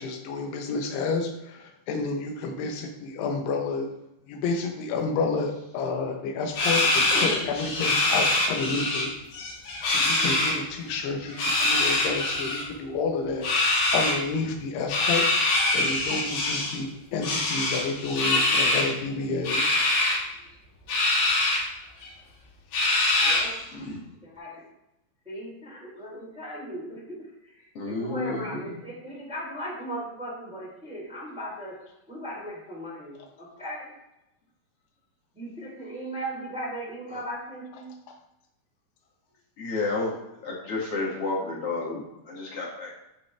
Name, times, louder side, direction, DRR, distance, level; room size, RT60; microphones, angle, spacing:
voice 1, 0.0-3.9 4.3-9.1 9.9-11.3 11.6-15.3 15.7-19.8, left 4 dB, 85° left, 3 dB, 3.1 m, -30 dB
sound 1, 6.5-9.1 9.3-10.5 11.3-12.6 13.4-14.2 14.9-16.8 17.2-18.9 19.4-20.2 20.9-21.6 22.0-22.1 22.7-23.6, left 2 dB, 60° left, 3.9 m, -24 dB
voice 2, 7.1-7.6 23.7-24.0 27.7-28.8 37.1-37.2 39.6-40.1 40.4-42.9, left 3 dB, 45° left, -4 dB, 2.5 m, -31 dB
voice 3, 23.2-23.5 24.2-24.6 25.2-27.0 27.4-31.7 32.1-33.9 35.3-37.9, equal, ahead, -6 dB, 2.8 m, -37 dB
12.0 x 5.4 x 3.4 m, 0.88 s
omnidirectional pair, 4.6 m